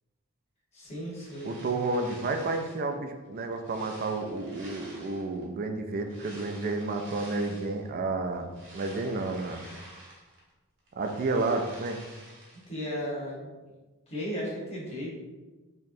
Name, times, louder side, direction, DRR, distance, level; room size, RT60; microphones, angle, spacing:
voice 1, 0.7-1.5 12.7-13.5 14.1-15.1, equal, 30° left, -5 dB, 1.2 m, -35 dB
sound 1, 0.9-2.9 3.4-5.4 6.0-7.9 8.3-10.5 10.8-12.7, right 1 dB, 60° right, 1.1 m, -50 dB
voice 2, 1.4-9.6 11.0-12.0, right 3 dB, 45° right, 5 dB, 0.3 m, -31 dB
4.2 x 3.0 x 2.6 m, 1.2 s
head